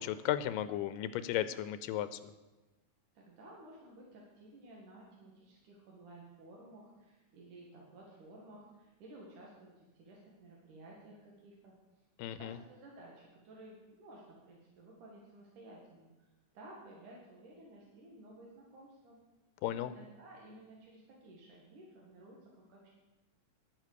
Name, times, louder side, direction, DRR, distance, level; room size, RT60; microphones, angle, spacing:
voice 1, 0.0-2.2 12.2-12.6 19.6-19.9, left 12 dB, 90° left, 13 dB, 2.3 m, -35 dB
voice 2, 3.1-11.7 12.4-16.1 16.5-19.2 19.9-22.9, right 1 dB, 70° right, -3 dB, 3.2 m, -55 dB
10.5 x 9.6 x 6.6 m, 1.1 s
omnidirectional pair, 3.8 m